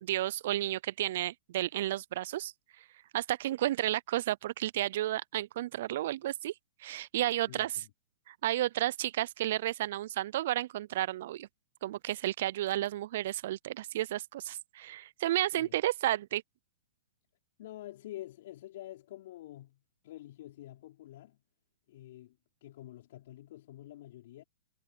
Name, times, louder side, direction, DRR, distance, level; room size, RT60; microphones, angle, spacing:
voice 1, 0.0-2.8 3.1-6.5 6.8-7.7 8.3-11.5 11.8-16.4, right 14 dB, 60° right, 0.4 m, -32 dB
voice 2, 7.5-7.9 15.5-15.8 17.6-21.4 21.9-24.4, left 14 dB, 60° left, 4.7 m, -48 dB
hypercardioid pair, 125°, 0 cm